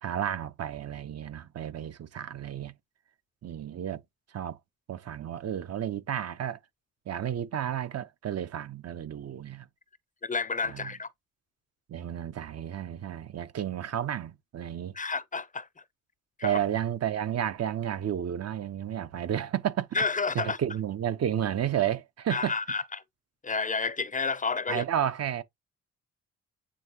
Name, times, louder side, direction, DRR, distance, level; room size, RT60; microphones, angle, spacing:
voice 1, 0.0-2.7 3.4-4.0 4.3-4.6 4.9-6.6 7.1-9.7 10.7-10.9 11.9-14.9 16.4-20.0 20.3-22.5 24.7-25.4, right 10 dB, 55° right, 1.1 m, -32 dB
voice 2, 10.2-11.1 14.9-15.7 16.4-16.6 19.9-20.6 22.3-23.0 23.4-24.8, left 4 dB, 25° left, 0.6 m, -30 dB
8.9 x 3.7 x 3.0 m
cardioid pair, 90°, 30 cm